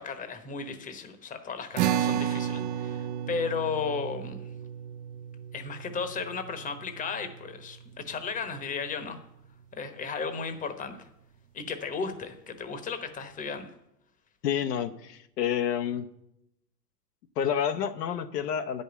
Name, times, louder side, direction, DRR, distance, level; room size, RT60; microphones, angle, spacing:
voice 1, 0.0-4.4 5.5-9.2 9.7-11.1 11.5-13.7, left 5 dB, 15° left, 9 dB, 1.0 m, -35 dB
sound 1, 1.8-8.4, right 10 dB, 45° right, 0.5 m, -33 dB
voice 2, 14.4-16.1 17.4-18.8, left 9 dB, 75° left, 6 dB, 0.9 m, -29 dB
9.9 x 5.4 x 8.1 m, 0.83 s
hypercardioid pair, 110°, 49 cm